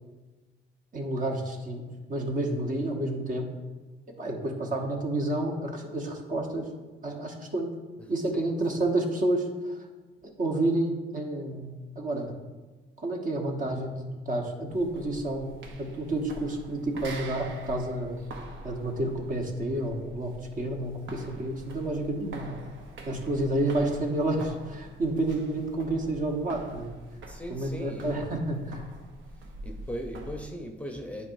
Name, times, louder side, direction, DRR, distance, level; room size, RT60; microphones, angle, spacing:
voice 1, 0.9-1.8 2.1-3.5 4.2-6.7 7.0-7.7 8.1-9.8 10.4-12.4 13.0-18.2 18.6-22.6 23.1-26.9 27.5-28.9, right 1 dB, 45° right, 2 dB, 1.1 m, -30 dB
voice 2, 8.0-8.5 27.3-28.2 29.6-31.3, equal, 5° left, 3 dB, 0.7 m, -39 dB
sound 1, 14.7-30.5, right 2 dB, 75° right, 0.9 m, -45 dB
9.6 x 4.7 x 2.6 m, 1.3 s
cardioid pair, 90°, 20 cm